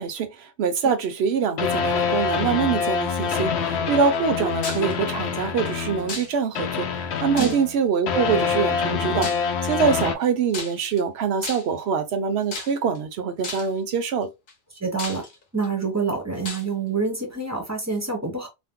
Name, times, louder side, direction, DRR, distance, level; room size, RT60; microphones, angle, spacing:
voice 1, 0.0-14.3, right 6 dB, 80° right, 0.9 m, -24 dB
sound 1, 1.6-6.3 6.5-10.1, left 6 dB, 85° left, 0.8 m, -25 dB
sound 2, 4.6-4.9 6.1-6.6 7.4-7.9 9.2-9.5 10.5-11.0 11.4-11.8 12.5-13.0 13.4-13.8 14.5-14.6 15.0-15.7 16.4-16.7, left 4 dB, 55° left, 0.9 m, -34 dB
voice 2, 14.8-15.2 15.5-18.5, right 4 dB, 20° right, 0.6 m, -27 dB
2.5 x 2.0 x 3.5 m
omnidirectional pair, 1.1 m